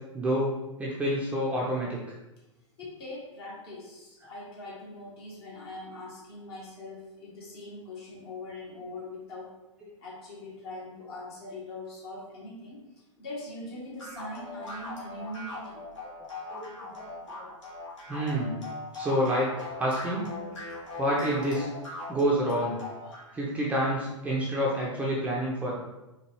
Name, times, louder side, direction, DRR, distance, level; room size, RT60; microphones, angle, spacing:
voice 1, 0.1-2.0 16.2-17.5 18.1-18.6 18.9-20.3 21.0-21.7 22.1-22.8 23.3-25.8, equal, 10° right, -5 dB, 0.5 m, -28 dB
voice 2, 2.8-9.5 10.0-12.8 13.2-15.8 23.1-23.2, left 2 dB, 50° left, -4 dB, 1.3 m, -42 dB
sound 1, 14.0-23.3, left 2 dB, 70° left, 1.5 m, -40 dB
4.5 x 2.4 x 3.1 m, 1.0 s
figure-of-eight pair, 105°, 17 cm